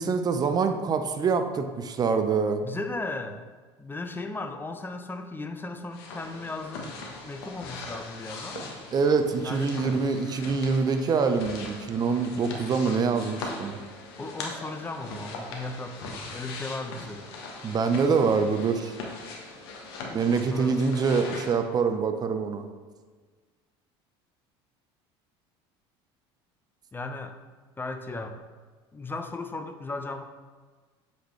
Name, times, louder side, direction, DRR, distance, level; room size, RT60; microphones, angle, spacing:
voice 1, 0.0-2.6 8.9-13.8 17.6-18.9 20.1-22.7, right 5 dB, 30° right, 7 dB, 0.6 m, -25 dB
voice 2, 2.6-3.4 3.8-8.7 9.4-10.0 14.2-17.3 20.3-20.8 26.9-27.4 27.8-28.4 28.9-30.2, left 2 dB, 15° left, 7 dB, 0.6 m, -36 dB
sound 1, 5.9-21.6, left 3 dB, 90° left, 1.1 m, -40 dB
7.9 x 4.2 x 3.1 m, 1.4 s
supercardioid pair, 95°, 13 cm